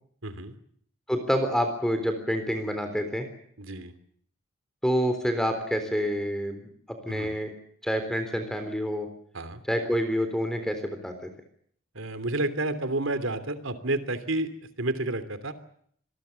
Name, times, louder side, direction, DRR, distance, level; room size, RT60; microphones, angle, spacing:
voice 1, 0.2-0.5 3.6-3.9 7.1-7.3 9.3-9.6 11.9-14.5 14.8-15.5, right 2 dB, 70° right, 12 dB, 3.0 m, -30 dB
voice 2, 1.1-3.3 4.8-7.5 7.8-9.1 9.6-11.3, equal, 5° left, 7 dB, 3.7 m, -28 dB
26.5 x 21.0 x 7.0 m, 0.63 s
head